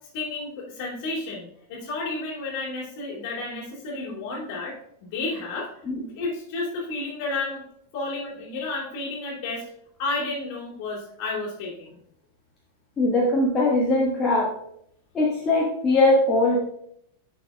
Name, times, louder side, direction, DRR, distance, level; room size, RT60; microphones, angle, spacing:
voice 1, 0.1-5.7 6.0-7.6 7.9-9.6 10.0-11.9, left 3 dB, 45° left, -3 dB, 2.6 m, -31 dB
voice 2, 13.0-14.5 15.1-16.6, left 2 dB, 20° left, -4 dB, 1.3 m, -21 dB
10.0 x 5.8 x 2.3 m, 0.72 s
figure-of-eight pair, 90°, 0 cm